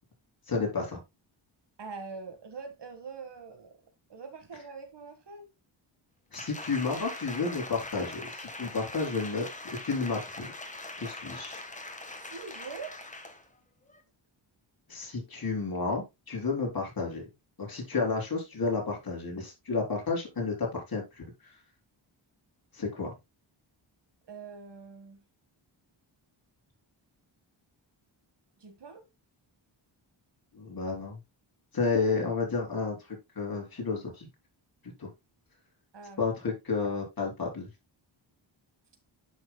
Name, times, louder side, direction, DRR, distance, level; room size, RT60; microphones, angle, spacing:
voice 1, 0.5-1.0 6.3-9.5 9.8-10.5 11.0-11.6 14.9-17.2 17.6-21.2 22.7-23.1 30.5-31.2 31.7-34.3 35.0-35.1 36.2-37.7, left 4 dB, 45° left, 4.2 m, -31 dB
voice 2, 1.8-3.7 4.1-5.5 12.2-12.9 24.3-25.2 28.6-29.0 35.9-36.3, right 5 dB, 60° right, 1.8 m, -43 dB
Applause, 6.3-13.5 13.9-14.0, left 2 dB, 15° left, 1.4 m, -42 dB
10.5 x 6.2 x 2.3 m
wide cardioid pair, 115°, 47 cm